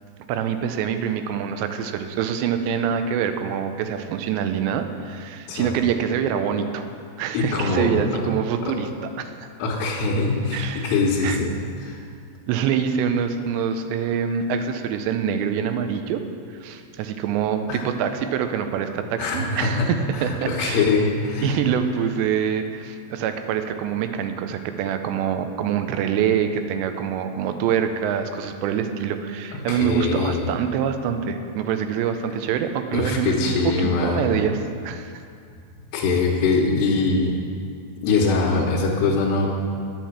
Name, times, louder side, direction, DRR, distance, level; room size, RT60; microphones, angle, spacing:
voice 1, 0.3-6.8 7.2-8.9 9.2-9.3 10.5-11.0 11.2-11.4 12.5-16.2 16.6-20.9 21.4-35.2, right 8 dB, 85° right, 8 dB, 2.9 m, -25 dB
voice 2, 5.5-5.8 7.3-8.2 8.6-8.7 9.6-11.5 11.8-12.0 17.7-17.8 19.2-21.6 29.5-30.5 32.9-34.3 35.9-37.4 38.0-39.5, left 3 dB, 85° left, -4 dB, 3.2 m, -23 dB
10.5 x 7.6 x 7.2 m, 2.3 s
omnidirectional pair, 5.0 m